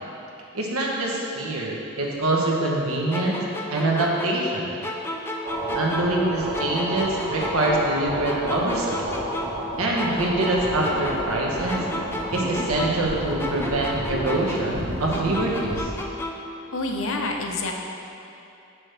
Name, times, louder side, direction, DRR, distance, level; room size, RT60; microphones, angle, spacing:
voice 1, 0.5-3.4 3.7-4.7 5.7-9.0 9.8-11.8 12.3-15.9, right 2 dB, 80° right, -2 dB, 1.0 m, -25 dB
sound 1, 3.1-6.3 6.5-9.7 10.0-13.1 13.4-16.5, left 1 dB, 10° left, 0.3 m, -33 dB
sound 2, 5.4-15.8, right 1 dB, 50° right, 1.5 m, -31 dB
voice 2, 16.7-17.7, left 2 dB, 65° left, 2 dB, 0.6 m, -27 dB
6.3 x 6.1 x 3.4 m, 2.7 s
head